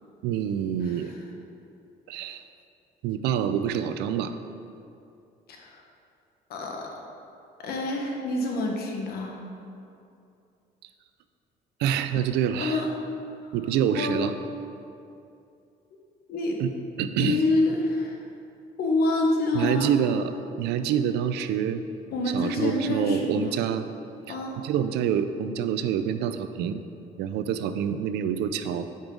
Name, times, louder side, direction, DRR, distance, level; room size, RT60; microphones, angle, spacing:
voice 1, 0.2-1.1 2.1-2.4 3.0-4.3 11.8-12.8 13.5-14.3 16.6-16.7 17.0-17.4 19.5-20.3 20.6-21.8 22.3-23.9 24.3-26.8 27.2-28.9, right 9 dB, 85° right, 10 dB, 0.5 m, -26 dB
voice 2, 0.8-1.2 5.5-5.8 6.5-6.9 7.6-9.4 12.6-12.9 14.0-14.1 16.3-16.6 17.2-18.2 18.8-19.9 22.1-23.5 24.3-24.6, left 2 dB, 65° left, 0 dB, 1.3 m, -27 dB
9.6 x 5.4 x 3.8 m, 2.6 s
cardioid pair, 110°, 17 cm